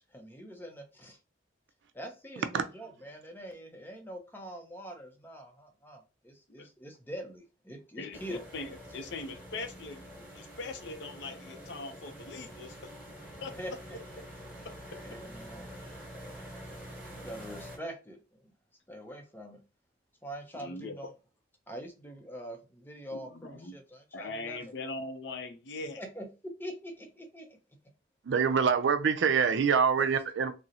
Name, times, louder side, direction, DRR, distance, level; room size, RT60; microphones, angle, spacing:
voice 1, 0.1-1.2 1.9-8.4 13.5-14.0 15.0-15.7 16.9-18.5 18.9-19.6 20.2-21.1 21.7-24.6 26.0-27.6, equal, 10° left, 0.5 m, -44 dB
voice 2, 8.0-12.9 13.4-13.6 14.6-15.0 20.5-21.0 23.1-23.8 24.1-26.0, left 3 dB, 60° left, 0.5 m, -41 dB
sound 1, 8.1-17.8, equal, 10° right, 1.2 m, -47 dB
voice 3, 28.2-30.5, right 6 dB, 65° right, 0.4 m, -25 dB
3.7 x 2.0 x 2.7 m
head